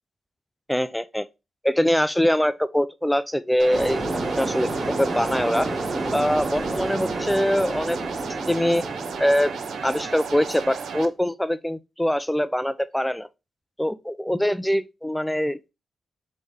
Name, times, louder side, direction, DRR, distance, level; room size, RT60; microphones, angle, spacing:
voice 1, 0.7-1.3 1.6-5.7 6.1-8.0 8.5-8.8 9.2-9.5 9.8-13.3 13.8-15.7, equal, 5° left, 0.4 m, -23 dB
sound 1, 3.6-11.1, right 6 dB, 80° right, 0.5 m, -34 dB
sound 2, 3.7-10.9, right 2 dB, 30° right, 1.2 m, -30 dB
4.1 x 3.3 x 3.5 m
cardioid pair, 70°, 0 cm